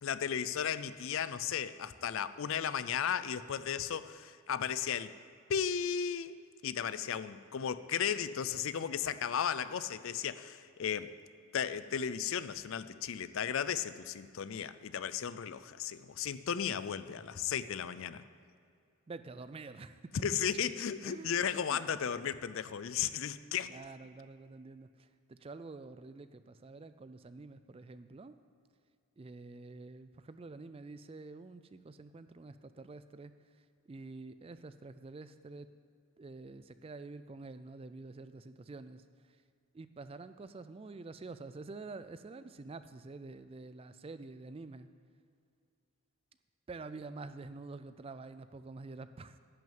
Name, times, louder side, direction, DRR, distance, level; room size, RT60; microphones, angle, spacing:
voice 1, 0.0-5.1 5.5-6.4 6.6-11.1 11.5-18.2 20.2-23.8, left 8 dB, 60° left, 14 dB, 0.4 m, -35 dB
voice 2, 19.1-20.0 21.0-21.4 21.7-21.8 23.6-28.4 29.2-33.3 33.9-35.7 36.2-39.0 39.7-44.9 46.7-49.4, right 3 dB, 25° right, 12 dB, 0.3 m, -48 dB
11.0 x 6.2 x 8.8 m, 2.3 s
head